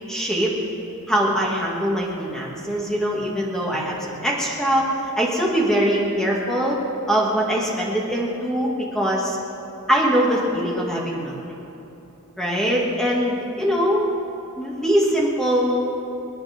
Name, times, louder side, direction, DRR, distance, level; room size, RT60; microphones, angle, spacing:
voice 1, 0.1-0.5 1.1-6.8 7.1-9.4 9.9-11.3 12.4-14.0 14.6-15.8, equal, ahead, -4 dB, 2.2 m, -22 dB
27.5 x 11.0 x 3.7 m, 3.0 s
head